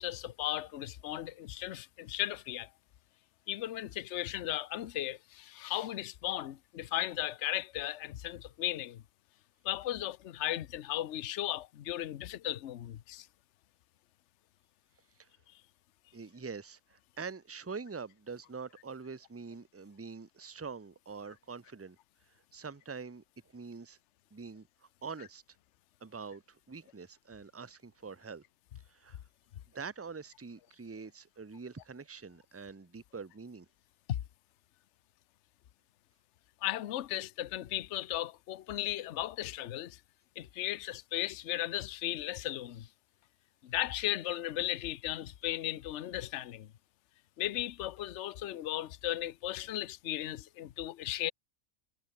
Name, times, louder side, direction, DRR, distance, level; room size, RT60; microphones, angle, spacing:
voice 1, 0.0-2.7 3.5-9.0 9.6-13.3 34.1-34.2 36.6-40.0 40.4-42.9 43.6-46.7 47.4-51.3, left 13 dB, 65° left, 1.0 m, -36 dB
voice 2, 16.1-22.0 22.5-23.2 23.5-24.0 24.3-24.7 25.0-25.4 26.0-28.4 28.9-29.2 29.7-33.7, right 5 dB, 15° right, 0.5 m, -44 dB
omnidirectional pair, 1.4 m